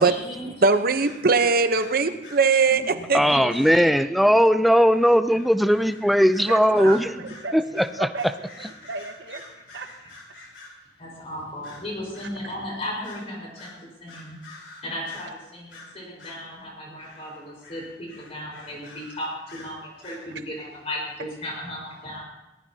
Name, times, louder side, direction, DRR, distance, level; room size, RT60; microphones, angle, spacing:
voice 1, 0.0-0.5 1.9-2.1 2.7-3.9 4.2-4.3 5.3-5.4 7.1-7.2 11.0-13.7 14.0-14.4 14.8-22.2, left 1 dB, 35° left, -2 dB, 4.7 m, -36 dB
voice 2, 0.6-3.2, right 4 dB, 55° right, 9 dB, 0.9 m, -20 dB
sound 1, 1.0-2.5 4.8-10.9 11.6-12.4 13.0-13.3 13.6-15.4 15.7-16.5 17.0-20.3, left 3 dB, 85° left, 3.9 m, -47 dB
voice 3, 3.1-7.1 7.5-7.6 8.0-8.1, equal, ahead, 11 dB, 0.4 m, -18 dB
voice 4, 6.5-9.4 9.7-10.1, right 3 dB, 75° right, 6 dB, 1.3 m, -35 dB
22.0 x 19.5 x 2.8 m, 1.0 s
head